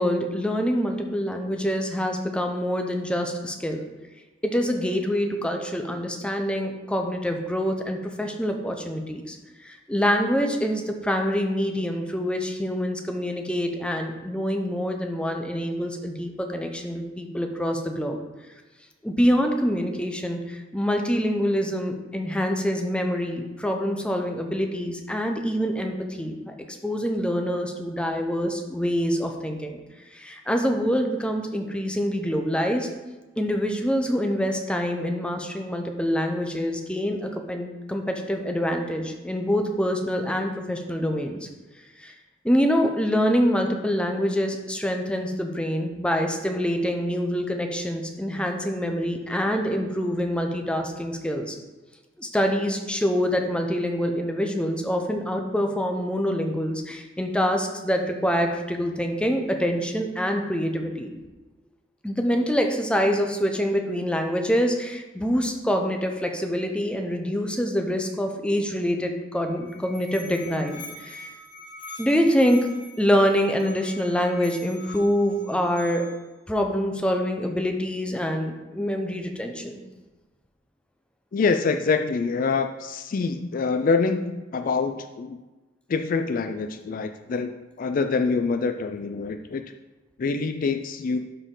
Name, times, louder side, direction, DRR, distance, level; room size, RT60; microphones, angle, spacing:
voice 1, 0.0-3.9 4.4-9.4 9.6-18.2 19.0-26.6 26.8-29.8 30.1-32.9 33.4-41.5 42.0-42.1 42.4-51.5 52.2-61.1 62.0-71.3 72.0-72.7 73.0-76.1 76.5-79.8, equal, 5° left, 3 dB, 0.7 m, -25 dB
Musical instrument, 69.3-76.3, left 2 dB, 70° left, 2.2 m, -44 dB
voice 2, 81.3-85.4 85.9-87.5 87.8-89.6 90.2-91.2, left 4 dB, 50° left, 7 dB, 0.4 m, -25 dB
12.0 x 4.4 x 3.8 m, 1.2 s
head